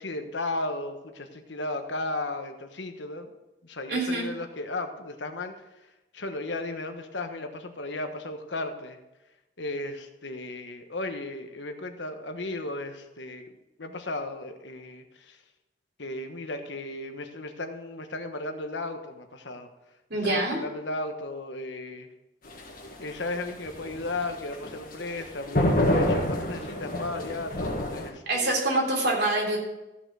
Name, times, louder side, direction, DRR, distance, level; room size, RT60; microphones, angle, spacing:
voice 1, 0.0-3.3 3.6-5.5 6.1-9.0 9.6-13.5 13.8-15.4 16.0-19.7 20.2-22.1 23.0-28.6, left 2 dB, 75° left, 6 dB, 1.2 m, -35 dB
voice 2, 3.9-4.3 20.1-20.6 28.3-29.6, right 2 dB, 60° right, -1 dB, 3.5 m, -25 dB
sound 1, 22.4-28.1, left 1 dB, 50° left, 1.9 m, -28 dB
14.5 x 5.9 x 6.3 m, 0.99 s
head